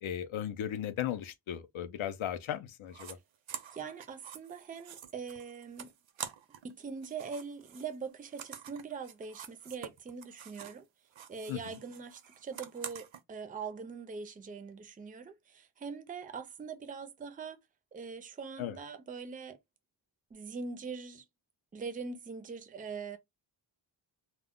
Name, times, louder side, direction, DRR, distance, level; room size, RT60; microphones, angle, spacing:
voice 1, 0.0-3.2 11.5-11.8 18.6-18.8, left 10 dB, 85° left, 0.6 m, -36 dB
sound 1, 2.9-3.1 3.5-6.7 7.0-10.8 11.1-13.2, right 9 dB, 80° right, 0.6 m, -47 dB
voice 2, 3.7-5.9 6.6-10.8 11.3-17.6 17.9-19.6 20.3-21.2 21.7-23.2, right 5 dB, 20° right, 0.3 m, -42 dB
2.2 x 2.0 x 3.5 m
wide cardioid pair, 145°, 46 cm